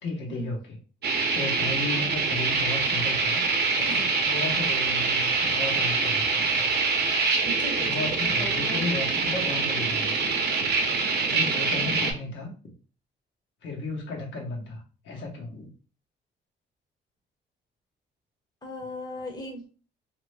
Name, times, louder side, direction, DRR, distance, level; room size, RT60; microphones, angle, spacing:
voice 1, 0.0-0.8 1.3-3.4 3.9-6.6 7.7-10.4 11.3-12.7 13.6-15.7, left 2 dB, 70° left, 0 dB, 1.0 m, -34 dB
sound 1, 1.0-12.1, right 4 dB, 55° right, 0.7 m, -25 dB
voice 2, 7.4-8.9 11.3-11.4 12.0-12.2 18.6-19.7, left 1 dB, 20° left, 1 dB, 0.8 m, -38 dB
2.7 x 2.1 x 3.1 m, 0.36 s
cardioid pair, 90°, 20 cm